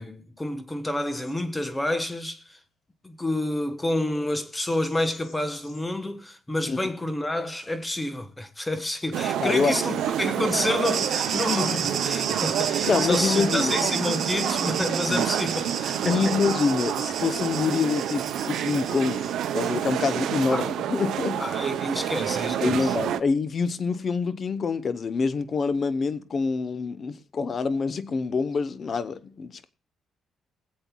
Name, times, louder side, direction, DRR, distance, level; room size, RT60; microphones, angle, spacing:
voice 1, 0.0-2.6 3.0-16.3 20.5-20.6 21.4-23.0, left 1 dB, 15° left, 1.2 m, -29 dB
Bird vocalization bird call bird song, 1.1-1.4 1.7-2.0 4.5-6.0 6.5-6.6 7.3-7.7 8.2-8.3 8.9-10.8 12.9-13.0 13.6-16.1 16.4-16.5 17.2-18.0 18.3-18.4 18.6-20.8, left 3 dB, 80° left, 5.4 m, -55 dB
sound 1, 9.1-23.2, right 10 dB, 80° right, 0.7 m, -28 dB
voice 2, 9.4-9.7 12.8-13.8 15.1-15.3 16.0-19.2 19.5-21.4 22.6-29.7, left 5 dB, 45° left, 0.8 m, -26 dB
sound 2, 10.8-19.7, right 7 dB, 60° right, 1.5 m, -32 dB
23.0 x 7.8 x 2.3 m
cardioid pair, 90°, 0 cm